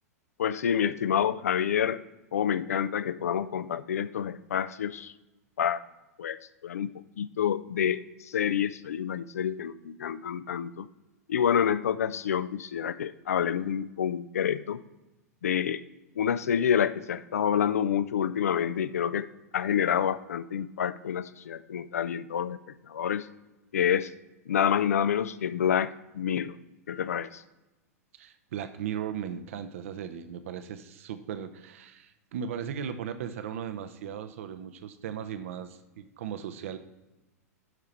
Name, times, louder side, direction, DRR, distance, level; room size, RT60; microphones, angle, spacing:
voice 1, 0.4-2.0 2.3-5.1 5.6-5.8 6.2-6.4 6.6-6.9 7.2-10.9 11.3-14.8 15.4-15.8 16.2-19.3 19.5-22.6 22.9-23.3 23.7-24.1 24.5-26.6 26.9-27.4, left 8 dB, 70° left, 15 dB, 0.4 m, -28 dB
voice 2, 28.1-36.8, right 8 dB, 55° right, 10 dB, 0.6 m, -37 dB
12.5 x 4.6 x 3.2 m, 1.0 s
figure-of-eight pair, 95°, 9 cm